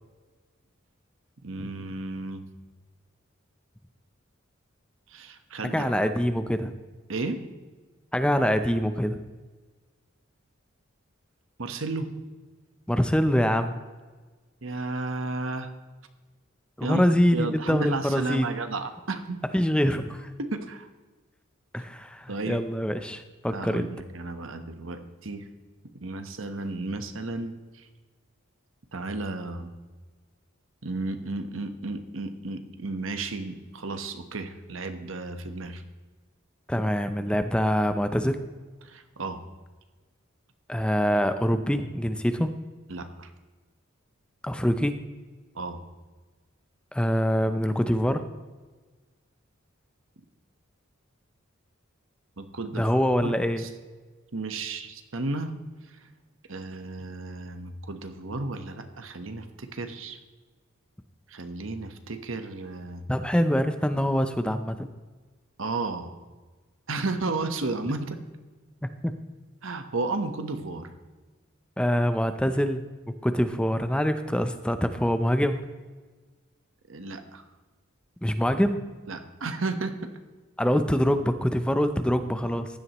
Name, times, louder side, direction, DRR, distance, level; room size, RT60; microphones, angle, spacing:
voice 1, 1.4-2.4 5.1-5.9 7.1-7.4 11.6-12.1 14.6-15.7 16.8-17.0 17.3-19.4 20.4-20.9 22.3-22.6 23.5-25.5 26.0-27.9 28.9-29.7 30.8-35.8 38.8-39.4 42.9-43.3 45.5-45.8 52.4-52.9 53.2-53.7 54.3-55.5 55.9-56.0 56.5-60.2 61.3-63.0 65.6-66.1 66.9-68.2 69.6-70.9 76.9-77.5 79.1-80.1, right 3 dB, 70° right, 8 dB, 1.1 m, -33 dB
voice 2, 5.7-6.7 8.1-9.2 12.9-13.7 16.8-18.5 19.5-20.3 21.7-23.9 36.7-38.4 40.7-42.5 44.4-44.9 46.9-48.2 52.7-53.6 63.1-64.9 69.0-69.1 71.8-72.8 73.2-75.6 78.2-78.9 80.6-82.7, equal, 5° left, 9 dB, 0.5 m, -24 dB
15.5 x 11.0 x 3.0 m, 1.3 s
head